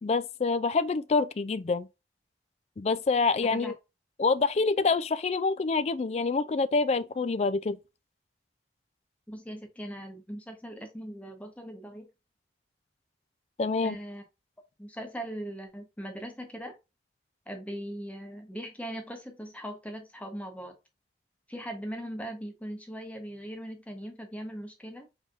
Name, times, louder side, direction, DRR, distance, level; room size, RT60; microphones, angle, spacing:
voice 1, 0.0-1.9 2.8-3.7 4.2-7.8 13.6-14.0, left 4 dB, 35° left, 0.3 m, -26 dB
voice 2, 3.4-3.7 9.3-12.1 13.8-14.2 14.8-16.8 17.5-20.7 21.5-25.1, equal, 10° left, 1.0 m, -40 dB
5.5 x 3.5 x 2.5 m
head